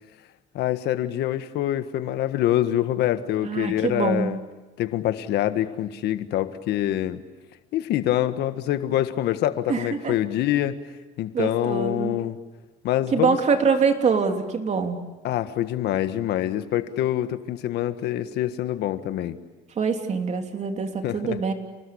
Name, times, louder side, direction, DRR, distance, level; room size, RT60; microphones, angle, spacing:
voice 1, 0.5-4.4 4.8-7.2 7.7-10.8 11.2-12.4 12.8-13.4 15.2-19.4 21.0-21.4, left 12 dB, 80° left, 10 dB, 1.6 m, -25 dB
voice 2, 3.4-4.3 9.7-10.2 11.3-12.1 13.1-15.0 19.8-21.5, right 5 dB, 40° right, 5 dB, 3.2 m, -24 dB
29.5 x 20.0 x 8.6 m, 1.2 s
cardioid pair, 110°, 17 cm